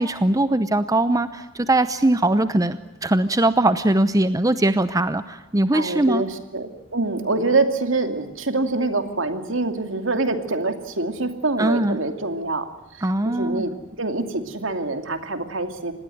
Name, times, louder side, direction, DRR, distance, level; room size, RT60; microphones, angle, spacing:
voice 1, 0.0-6.2 11.6-12.0 13.0-13.7, right 1 dB, 15° right, 12 dB, 0.7 m, -21 dB
voice 2, 5.7-13.7 14.0-15.9, right 3 dB, 65° right, 7 dB, 2.7 m, -25 dB
26.5 x 20.0 x 7.8 m, 1.0 s
head